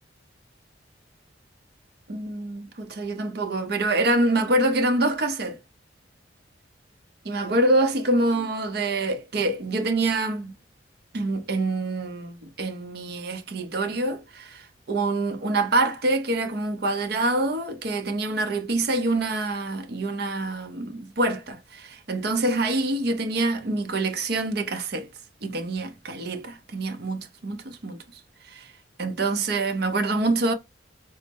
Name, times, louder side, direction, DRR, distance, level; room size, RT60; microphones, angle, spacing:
voice 1, 2.1-5.6 7.2-10.5 11.1-25.1 25.4-28.0 28.5-28.7 29.0-30.5, right 2 dB, 55° right, 0.6 m, -26 dB
4.0 x 2.0 x 3.4 m
head